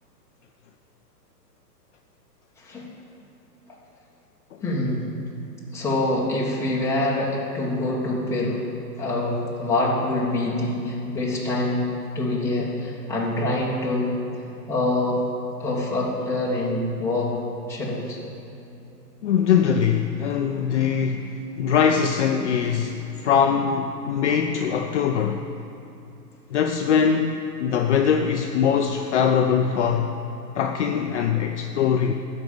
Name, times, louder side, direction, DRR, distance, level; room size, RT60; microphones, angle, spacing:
voice 1, 4.6-5.1 5.7-8.6 9.0-14.2 14.7-15.3 15.6-17.4 17.7-18.2, left 2 dB, 5° left, -6 dB, 1.5 m, -25 dB
voice 2, 19.2-25.5 26.5-30.1 30.6-32.1, left 7 dB, 45° left, 5 dB, 0.5 m, -22 dB
13.0 x 5.3 x 6.9 m, 2.8 s
hypercardioid pair, 140°, 49 cm